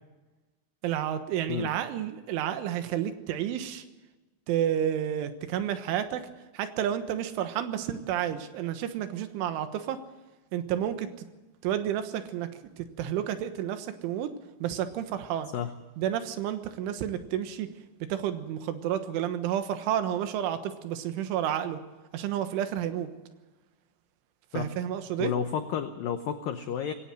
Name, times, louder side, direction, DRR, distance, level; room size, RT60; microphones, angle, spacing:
voice 1, 0.8-3.8 4.5-6.2 6.6-10.0 10.5-11.1 11.6-12.5 12.8-14.3 14.6-15.5 16.0-17.7 18.1-21.8 22.1-23.1 24.5-25.3, right 10 dB, 85° right, 9 dB, 3.7 m, -30 dB
voice 2, 25.2-26.9, left 8 dB, 85° left, 8 dB, 2.0 m, -31 dB
21.0 x 17.5 x 7.8 m, 1.1 s
omnidirectional pair, 5.5 m